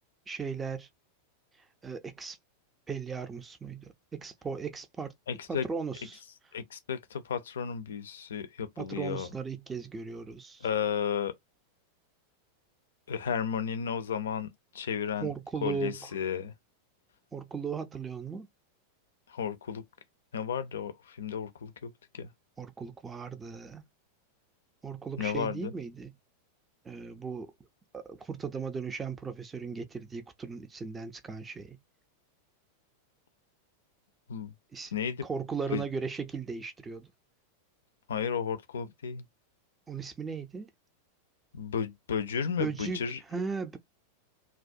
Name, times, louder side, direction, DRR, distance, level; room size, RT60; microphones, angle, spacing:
voice 1, 0.3-0.9 1.8-2.4 2.9-5.1 5.5-6.2 8.8-10.7 15.2-16.0 17.3-18.5 22.6-23.8 24.8-26.1 26.8-27.5 27.9-31.8 34.7-34.9 35.2-37.1 39.9-40.7 42.6-43.0 43.3-43.8, right 5 dB, 15° right, 0.5 m, -37 dB
voice 2, 5.3-5.7 6.5-9.3 10.6-11.3 13.1-15.3 15.6-16.5 19.3-19.8 20.3-22.3 25.2-25.7 34.3-34.5 34.9-35.3 35.7-35.8 38.1-39.2 41.5-43.2, left 7 dB, 65° left, 0.4 m, -33 dB
2.2 x 2.0 x 2.6 m
figure-of-eight pair, 90°, 0 cm